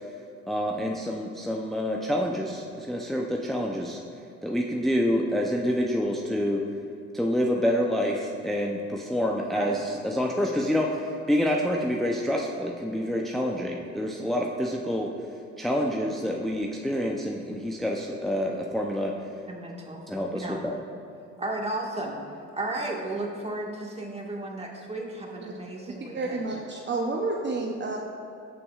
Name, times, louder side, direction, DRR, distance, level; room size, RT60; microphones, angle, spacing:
voice 1, 0.5-4.0 4.4-6.6 7.1-15.1 15.6-19.1 20.1-20.7, equal, ahead, -1 dB, 0.6 m, -27 dB
voice 2, 19.5-20.0 20.4-20.6 21.4-22.2 22.5-26.4, right 2 dB, 20° right, -1 dB, 1.8 m, -34 dB
voice 3, 26.1-28.0, right 3 dB, 40° right, 0 dB, 0.8 m, -30 dB
16.0 x 5.9 x 2.4 m, 2.7 s
supercardioid pair, 80°, 30 cm